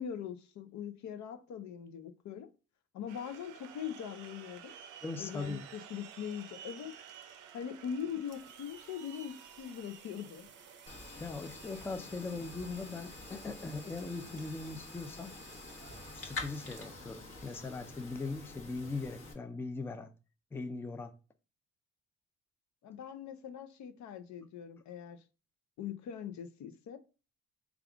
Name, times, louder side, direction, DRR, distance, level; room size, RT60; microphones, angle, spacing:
voice 1, 0.0-2.5 2.9-4.7 5.2-6.9 7.5-10.5 22.8-25.2 25.8-27.0, left 8 dB, 70° left, 0.6 m, -41 dB
sound 1, 3.1-18.5, right 9 dB, 80° right, 0.5 m, -55 dB
voice 2, 5.0-5.7 11.2-15.3 16.1-20.1 20.5-21.1, left 3 dB, 10° left, 0.3 m, -40 dB
sound 2, 7.8-18.1, right 5 dB, 40° right, 0.7 m, -59 dB
sound 3, 10.9-19.3, left 3 dB, 45° left, 1.1 m, -47 dB
3.5 x 2.4 x 3.5 m
cardioid pair, 90°, 30 cm